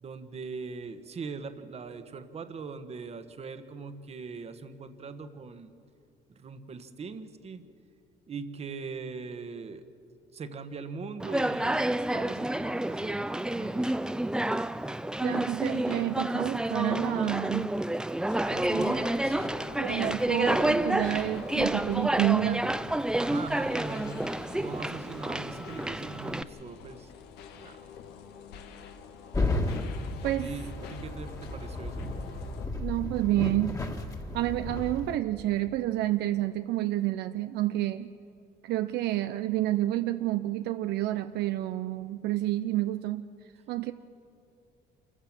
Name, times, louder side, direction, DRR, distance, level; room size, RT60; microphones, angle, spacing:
voice 1, 0.0-5.7 6.3-7.6 8.3-9.8 10.3-14.1 18.4-19.6 23.2-24.2 24.6-27.1 27.5-27.8 30.2-32.1, right 4 dB, 40° right, 9 dB, 1.4 m, -41 dB
Conversation, 11.2-26.4, right 1 dB, 5° right, 0.5 m, -29 dB
voice 2, 15.2-17.7 18.7-19.0 19.8-22.7 30.2-30.5 32.8-33.8 34.3-38.1 38.6-43.3 43.7-43.9, right 15 dB, 75° right, 9 dB, 0.6 m, -29 dB
sound 1, 18.3-32.7, left 7 dB, 85° left, 1.5 m, -46 dB
sound 2, 29.3-35.2, left 2 dB, 20° left, 2.0 m, -33 dB
27.0 x 15.0 x 7.5 m, 2.5 s
cardioid pair, 110°, 17 cm